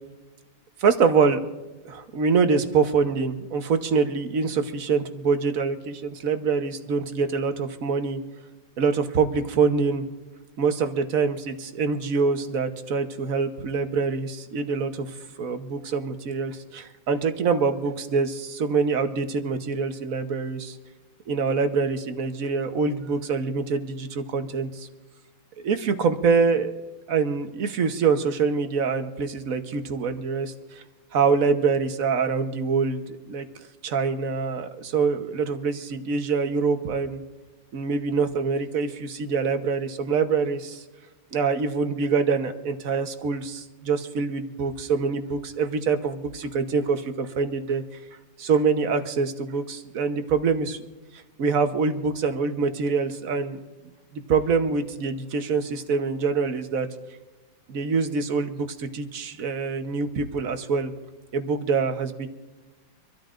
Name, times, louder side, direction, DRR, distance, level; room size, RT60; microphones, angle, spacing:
voice 1, 0.8-1.4 1.8-8.2 8.8-10.0 10.6-15.1 15.4-20.8 21.3-24.9 25.6-26.7 27.1-30.5 31.1-33.4 33.8-37.2 37.7-40.8 41.3-47.8 48.4-50.8 51.4-53.6 54.1-56.9 57.7-60.9 61.3-62.3, right 5 dB, 50° right, 8 dB, 1.3 m, -25 dB
26.0 x 13.0 x 2.5 m, 1.2 s
omnidirectional pair, 2.1 m